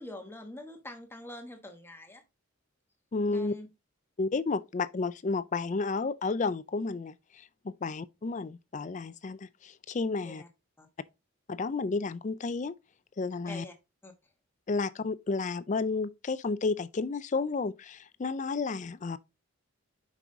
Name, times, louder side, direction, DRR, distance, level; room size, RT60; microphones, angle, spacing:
voice 1, 0.0-2.2 3.3-3.7 10.2-10.5 10.8-10.9 13.5-13.7 14.0-14.1, left 1 dB, 10° left, 1.2 m, -44 dB
voice 2, 3.1-3.5 4.2-10.4 11.5-12.7 13.2-13.6 14.7-19.2, left 4 dB, 35° left, 0.4 m, -32 dB
5.9 x 5.4 x 3.8 m
head